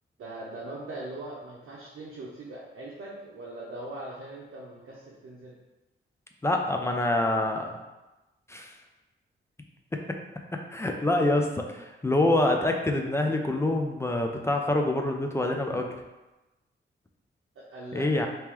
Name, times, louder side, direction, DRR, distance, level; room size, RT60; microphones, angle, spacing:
voice 1, 0.2-5.5 17.6-18.2, right 2 dB, 80° right, -5 dB, 0.6 m, -41 dB
voice 2, 6.4-7.7 8.5-8.7 10.7-15.9 17.9-18.3, left 2 dB, 15° left, 2 dB, 0.3 m, -26 dB
3.0 x 2.9 x 3.5 m, 1.1 s
wide cardioid pair, 160°, 21 cm